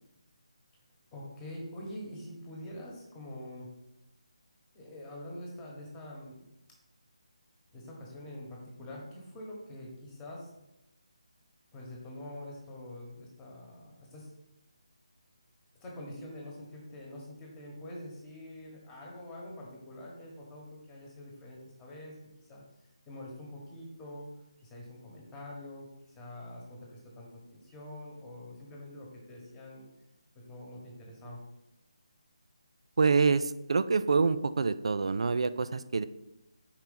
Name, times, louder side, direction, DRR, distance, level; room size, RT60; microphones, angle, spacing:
voice 1, 1.1-3.7 4.7-6.5 7.7-10.5 11.7-14.3 15.8-22.2 22.5-22.6 23.1-24.3 24.6-25.9 26.1-29.8 30.3-31.4, left 1 dB, 10° left, -2 dB, 1.3 m, -45 dB
voice 2, 33.0-36.0, right 4 dB, 60° right, 13 dB, 0.4 m, -26 dB
4.8 x 4.5 x 5.4 m, 0.89 s
figure-of-eight pair, 160°, 3 cm